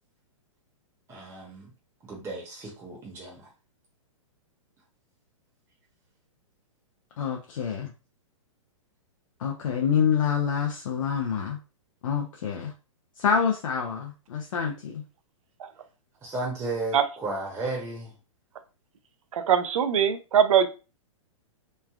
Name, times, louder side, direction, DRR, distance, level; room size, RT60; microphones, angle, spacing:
voice 1, 1.1-1.7 2.0-3.5 16.2-18.1, right 2 dB, 15° right, -3 dB, 0.8 m, -34 dB
voice 2, 7.2-7.9 9.4-11.6 12.0-12.7 13.2-15.0, left 7 dB, 75° left, 1 dB, 0.6 m, -27 dB
voice 3, 19.5-20.7, right 8 dB, 80° right, 10 dB, 0.5 m, -21 dB
3.1 x 2.3 x 2.3 m, 0.32 s
hypercardioid pair, 135°, 17 cm